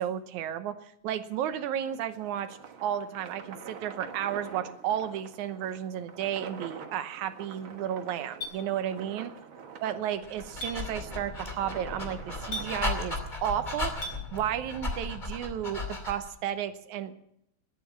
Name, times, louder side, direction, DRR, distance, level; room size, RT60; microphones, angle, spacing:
voice 1, 0.0-9.3 9.8-17.1, right 10 dB, 90° right, 11 dB, 2.4 m, -33 dB
sound 1, 1.8-13.1, right 6 dB, 50° right, 1.8 m, -46 dB
Chink clink, 8.4-8.6 10.6-10.8 12.5-12.7 14.0-14.2, equal, 55° left, 5.0 m, -35 dB
Dog, 10.2-16.3, left 2 dB, 15° left, 2.4 m, -36 dB
20.0 x 9.4 x 7.2 m, 0.76 s
omnidirectional pair, 3.3 m